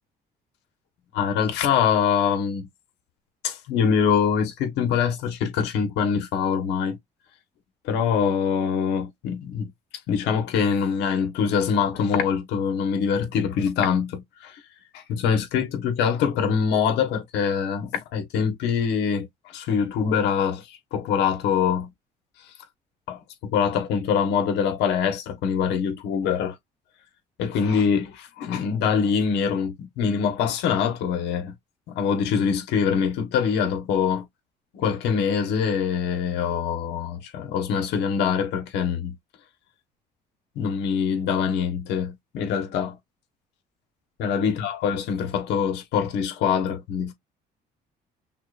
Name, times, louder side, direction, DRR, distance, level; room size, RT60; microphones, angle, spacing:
voice 1, 1.1-2.7 3.4-7.0 7.8-9.7 10.1-14.6 14.9-21.9 22.4-22.5 23.1-26.6 27.4-31.5 31.9-34.3 34.7-39.1 40.5-43.0 44.2-47.1, left 7 dB, 90° left, 1.3 m, -24 dB
5.8 x 2.4 x 2.5 m
cardioid pair, 110°, 17 cm